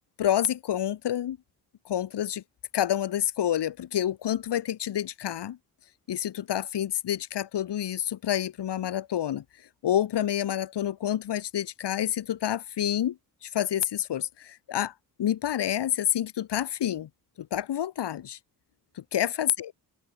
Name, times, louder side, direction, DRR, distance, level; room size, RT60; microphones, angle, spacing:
voice 1, 0.2-1.4 1.8-2.4 2.7-5.6 6.1-9.4 9.8-14.9 15.2-17.1 17.4-18.4 19.0-19.7, left 11 dB, 75° left, 1.4 m, -28 dB
open air
supercardioid pair, 45°, 42 cm